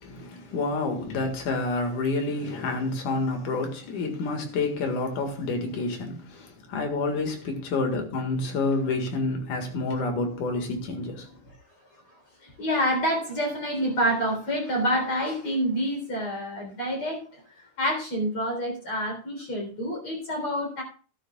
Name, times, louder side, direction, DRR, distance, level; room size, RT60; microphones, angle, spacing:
voice 1, 0.0-11.3, left 3 dB, 75° left, 3.3 m, -28 dB
voice 2, 12.6-17.2 17.8-20.8, equal, 45° left, 4.5 m, -27 dB
13.0 x 12.0 x 2.3 m
omnidirectional pair, 3.6 m